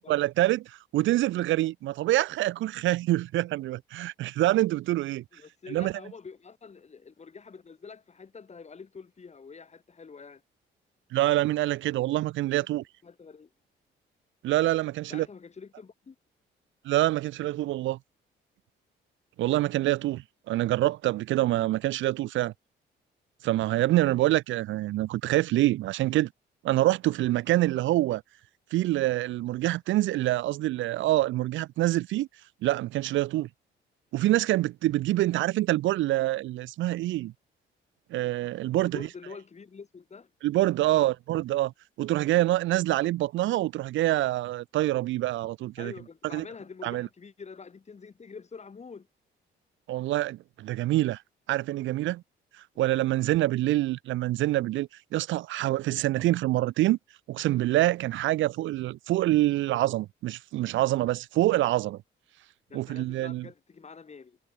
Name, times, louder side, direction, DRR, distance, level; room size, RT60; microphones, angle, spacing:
voice 1, 0.1-5.2 5.7-5.9 11.1-12.8 14.4-15.3 16.8-18.0 19.4-22.5 23.4-26.3 26.6-28.2 28.7-32.3 32.6-33.5 34.1-37.3 38.1-39.0 40.4-41.7 42.0-45.9 46.3-46.4 46.8-47.1 49.9-51.2 51.5-52.2 52.8-57.0 57.3-62.0 62.7-63.5, right 16 dB, 75° right, 0.4 m, -26 dB
voice 2, 5.3-10.4 12.5-12.7 13.0-13.5 15.1-16.2 38.8-40.3 40.9-41.1 45.8-49.1 52.9-53.2 62.7-64.4, left 5 dB, 35° left, 3.0 m, -46 dB
cardioid pair, 90°, 20 cm